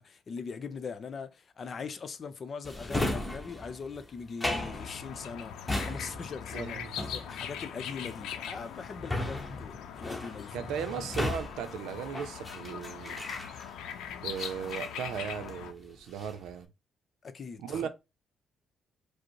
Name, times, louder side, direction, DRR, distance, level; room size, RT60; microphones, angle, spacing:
voice 1, 0.0-10.7 17.2-17.9, left 5 dB, 45° left, 0.6 m, -41 dB
Drawer open or close, 2.6-13.9 14.3-15.6 16.0-16.5, left 1 dB, 10° left, 1.0 m, -37 dB
sound 1, 4.5-15.7, left 8 dB, 90° left, 0.6 m, -41 dB
voice 2, 6.5-6.9 10.5-13.2 14.2-16.7 17.6-17.9, right 8 dB, 85° right, 0.5 m, -37 dB
5.0 x 2.1 x 4.6 m
cardioid pair, 90°, 0 cm